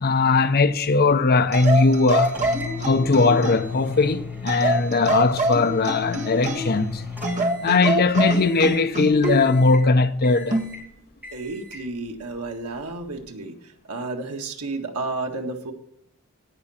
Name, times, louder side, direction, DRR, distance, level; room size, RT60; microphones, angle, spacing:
voice 1, 0.0-2.4 2.8-7.0 7.6-10.6, left 3 dB, 45° left, 0.6 m, -19 dB
sound 1, 1.5-3.8 4.5-6.8 7.2-9.4 10.5-10.8, right 1 dB, 35° right, 1.6 m, -26 dB
sound 2, 2.2-7.9 8.2-8.8 9.2-9.9 10.2-10.8 11.2-11.9, left 5 dB, 10° right, 4.4 m, -36 dB
voice 2, 11.3-13.5 13.9-15.7, right 3 dB, 80° right, 1.8 m, -31 dB
17.5 x 6.0 x 4.3 m
head